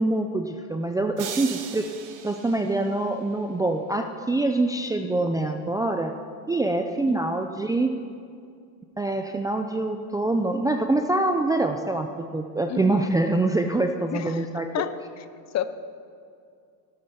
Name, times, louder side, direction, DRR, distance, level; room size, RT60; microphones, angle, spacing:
voice 1, 0.0-1.9 2.2-6.1 6.5-7.9 9.0-12.1 12.3-14.7, right 2 dB, 10° right, 4 dB, 0.5 m, -25 dB
sound 1, 1.2-3.4, right 8 dB, 40° right, 1.5 m, -38 dB
voice 2, 12.7-13.1 14.1-14.5 14.7-15.2 15.5-15.7, left 10 dB, 35° left, 12 dB, 0.7 m, -31 dB
16.5 x 12.5 x 5.8 m, 2.4 s
supercardioid pair, 130°, 49 cm